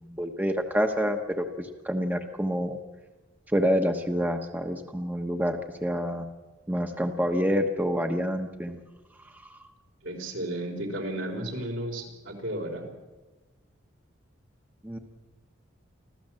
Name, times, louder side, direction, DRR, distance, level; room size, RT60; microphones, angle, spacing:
voice 1, 0.1-2.8 3.5-6.3 6.7-8.8 14.8-15.0, equal, 10° right, 5 dB, 1.1 m, -27 dB
voice 2, 10.0-12.9, right 1 dB, 75° right, 2 dB, 4.2 m, -33 dB
25.5 x 15.5 x 7.6 m, 1.2 s
head